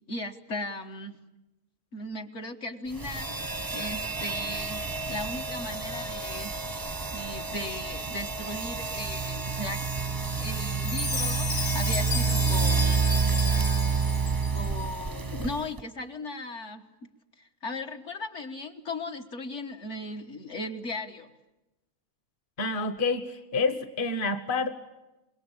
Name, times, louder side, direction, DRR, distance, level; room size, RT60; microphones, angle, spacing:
voice 1, 0.1-1.2 1.9-10.1 10.4-13.1 14.5-16.9 17.4-21.3, left 2 dB, 55° left, 3 dB, 1.7 m, -37 dB
sound 1, 2.9-15.8, right 5 dB, 20° right, 0.6 m, -29 dB
Chime, 10.8-14.8, left 4 dB, 80° left, 2.4 m, -34 dB
voice 2, 22.6-24.7, left 3 dB, 35° left, 10 dB, 1.5 m, -28 dB
26.0 x 21.5 x 8.7 m, 1.0 s
omnidirectional pair, 1.5 m